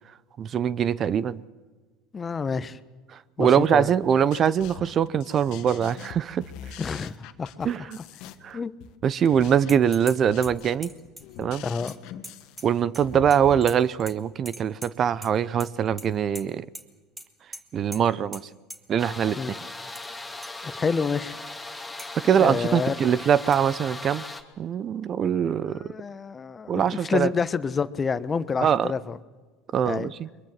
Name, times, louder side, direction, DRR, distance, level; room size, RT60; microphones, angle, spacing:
voice 1, 0.4-1.4 3.1-6.8 7.6-8.0 8.4-8.6 9.0-10.9 11.4-11.6 12.6-16.6 17.7-18.4 18.9-19.6 22.1-24.2 24.6-25.9 26.7-27.3 28.6-28.9 29.7-30.3, right 8 dB, 40° right, 0.7 m, -23 dB
voice 2, 2.1-2.8 3.4-3.9 6.8-7.7 8.5-8.7 11.6-11.9 19.4-19.6 20.6-21.3 22.4-22.9 25.7-29.2 29.8-30.1, left 5 dB, 25° left, 1.1 m, -28 dB
sound 1, 4.0-13.6, left 9 dB, 65° left, 1.5 m, -44 dB
sound 2, 9.7-10.2 10.4-13.0 13.3-14.1 14.5-15.3 15.6-16.1 16.3-16.4 16.7-16.8 17.2-17.3 17.5-17.6 17.9-18.0 18.3-18.4 18.7-18.8 19.7-20.1 20.4-20.5 21.0-21.1 22.0-22.1 23.5-23.6, right 1 dB, 10° right, 2.5 m, -41 dB
sound 3, 19.0-24.4, left 2 dB, 10° left, 2.5 m, -38 dB
22.5 x 22.5 x 7.5 m
hypercardioid pair, 85°, 0 cm